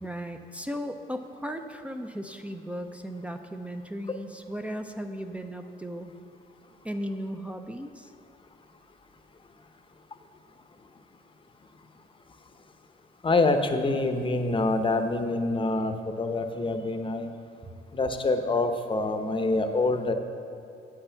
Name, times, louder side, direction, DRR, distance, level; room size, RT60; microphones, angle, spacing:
voice 1, 0.0-6.1 6.8-8.1, equal, 5° right, 6 dB, 0.5 m, -36 dB
voice 2, 13.2-17.3 17.9-20.1, left 2 dB, 25° left, 7 dB, 0.8 m, -26 dB
8.1 x 5.7 x 6.9 m, 2.8 s
cardioid pair, 90°, 20 cm